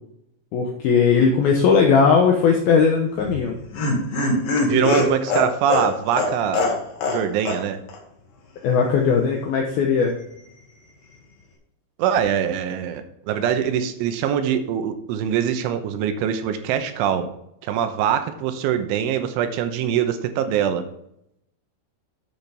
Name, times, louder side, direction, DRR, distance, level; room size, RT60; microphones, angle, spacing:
voice 1, 0.5-3.6 4.7-5.1 8.6-10.1, left 5 dB, 85° left, 1 dB, 2.1 m, -18 dB
Laughter, 3.2-7.2 7.5-7.6 7.9-8.0, left 2 dB, 55° left, 3.1 m, -22 dB
voice 2, 4.6-6.7 7.1-7.8 12.0-17.3 17.6-20.8, right 9 dB, 80° right, 8 dB, 3.2 m, -23 dB
10.5 x 7.7 x 3.5 m, 0.77 s
omnidirectional pair, 5.8 m